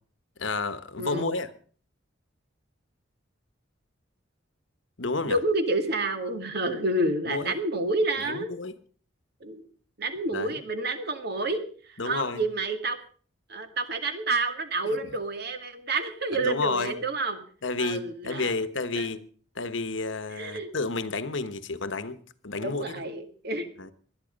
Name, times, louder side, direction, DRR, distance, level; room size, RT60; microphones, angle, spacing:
voice 1, 0.4-1.5 5.0-5.4 7.3-7.5 8.2-8.7 10.3-10.6 12.0-12.4 16.3-17.0 17.6-19.2 19.5-22.9 23.8-23.9, left 3 dB, 70° left, 1.2 m, -31 dB
voice 2, 1.0-1.4 5.2-8.5 9.4-9.6 10.0-11.6 11.9-13.0 13.5-17.4 17.8-18.6 18.9-19.1 20.3-20.7 22.6-23.7, right 2 dB, 55° right, 2.1 m, -29 dB
19.5 x 12.0 x 5.3 m
head